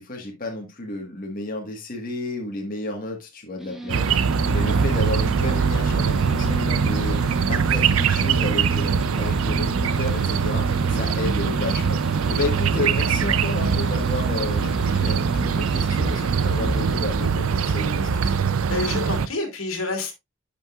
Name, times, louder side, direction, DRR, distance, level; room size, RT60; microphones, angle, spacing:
voice 1, 0.0-4.1 4.5-18.4, left 2 dB, 40° left, 1.5 m, -32 dB
sound 1, 3.6-17.3, equal, ahead, 1.1 m, -36 dB
sound 2, 3.9-19.3, right 6 dB, 80° right, 0.5 m, -22 dB
voice 2, 18.7-20.1, left 3 dB, 85° left, 2.3 m, -28 dB
10.0 x 6.0 x 2.4 m
head